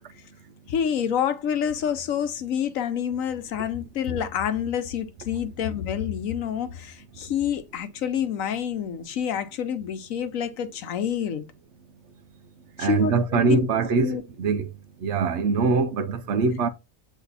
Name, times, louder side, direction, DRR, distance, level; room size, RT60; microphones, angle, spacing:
voice 1, 0.7-11.5 12.8-13.6 14.0-14.2, left 8 dB, 90° left, 1.2 m, -28 dB
voice 2, 12.8-14.7 15.0-16.7, right 4 dB, 65° right, 1.0 m, -23 dB
8.2 x 3.3 x 4.0 m
omnidirectional pair, 1.3 m